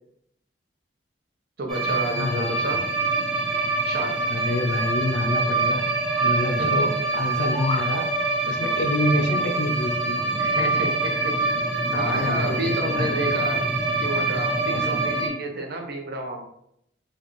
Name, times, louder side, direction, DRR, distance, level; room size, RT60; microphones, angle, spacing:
voice 1, 1.6-2.8 3.8-4.2 6.6-7.0 10.3-11.5 11.9-13.6 14.0-16.5, right 1 dB, 60° right, 2 dB, 0.8 m, -30 dB
sound 1, 1.7-15.3, right 3 dB, ahead, 0.8 m, -25 dB
voice 2, 2.2-2.6 4.3-5.8 6.2-8.1 8.4-10.2 11.8-13.5 14.7-15.0, left 2 dB, 85° left, 4 dB, 0.5 m, -27 dB
sound 2, 7.2-7.9, left 2 dB, 35° left, 0.7 m, -31 dB
4.3 x 2.4 x 3.1 m, 0.73 s
head